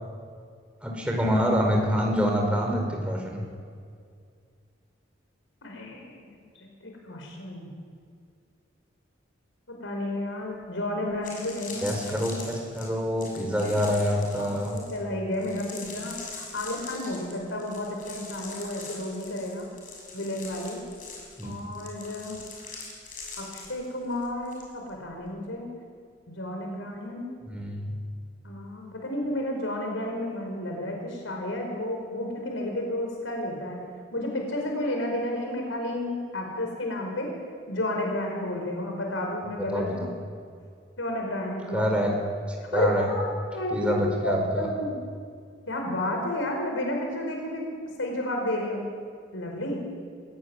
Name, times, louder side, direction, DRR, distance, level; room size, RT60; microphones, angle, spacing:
voice 1, 0.8-3.4 11.8-14.7 21.4-21.5 27.4-27.9 39.7-39.9 41.7-42.1 42.7-43.0 43.7-44.7, equal, 5° right, 0 dB, 4.7 m, -26 dB
voice 2, 5.6-7.7 9.8-12.2 13.6-13.7 14.4-19.7 20.1-20.8 21.4-22.4 23.4-25.7 26.3-27.3 28.4-33.8 34.1-37.3 37.7-40.1 41.0-41.8 42.7-43.2 43.5-44.9 45.7-47.7 48.0-48.9 49.3-49.8, left 1 dB, 85° left, 1 dB, 5.2 m, -31 dB
sound 1, 10.6-10.7 11.1-24.6 24.9-25.2, left 4 dB, 45° left, 6.9 m, -43 dB
24.0 x 17.0 x 9.8 m, 2.2 s
head